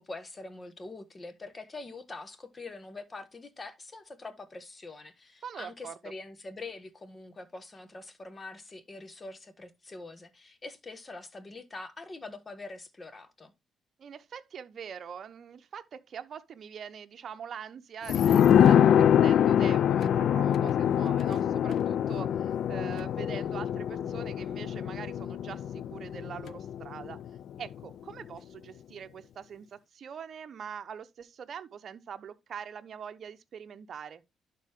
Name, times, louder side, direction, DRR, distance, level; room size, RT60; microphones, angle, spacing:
voice 1, 0.0-13.5, left 3 dB, 30° left, 1.5 m, -44 dB
voice 2, 5.4-6.0 14.0-27.2 27.6-34.2, right 7 dB, 55° right, 0.9 m, -43 dB
sound 1, 18.1-27.4 27.7-27.8, left 9 dB, 70° left, 0.3 m, -24 dB
11.5 x 4.2 x 3.6 m
cardioid pair, 90°, 0 cm